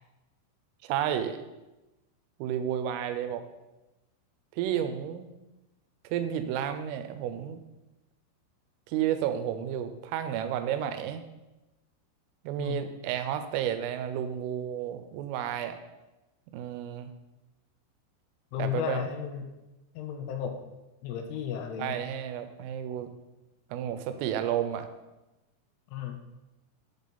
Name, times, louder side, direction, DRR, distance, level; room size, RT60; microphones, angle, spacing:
voice 1, 0.8-1.4 2.4-3.4 4.5-5.3 6.1-7.6 8.9-11.2 12.4-15.8 16.5-17.1 18.6-19.0 21.8-23.1 23.7-24.9, right 10 dB, 80° right, 9 dB, 3.3 m, -31 dB
voice 2, 18.5-19.4 20.0-20.6 21.0-22.0 25.9-26.2, left 9 dB, 80° left, 4 dB, 3.2 m, -34 dB
12.0 x 7.0 x 4.1 m, 1.0 s
omnidirectional pair, 5.9 m